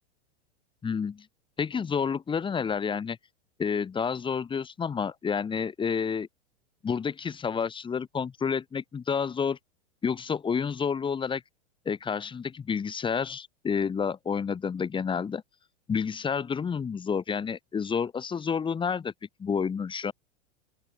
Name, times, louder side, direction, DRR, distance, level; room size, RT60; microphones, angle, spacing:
voice 1, 0.8-1.3 1.6-3.2 3.6-6.3 6.8-9.6 10.0-11.4 11.8-15.4 15.9-19.1 19.4-20.1, left 6 dB, 15° left, 1.6 m, -29 dB
open air
hypercardioid pair, 130°, 34 cm